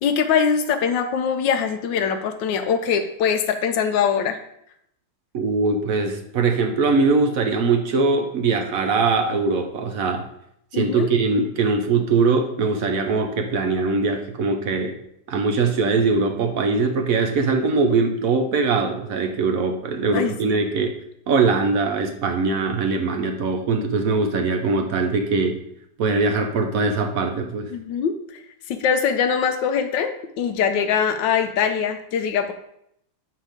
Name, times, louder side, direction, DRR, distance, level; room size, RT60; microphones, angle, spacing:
voice 1, 0.0-4.4 10.7-11.1 20.1-20.6 27.7-28.4 28.7-32.5, left 7 dB, 75° left, 7 dB, 1.2 m, -22 dB
voice 2, 5.3-10.3 10.7-15.0 15.3-21.0 21.3-25.6 26.0-27.7, right 4 dB, 65° right, 5 dB, 0.9 m, -21 dB
7.2 x 3.8 x 5.0 m, 0.75 s
omnidirectional pair, 2.1 m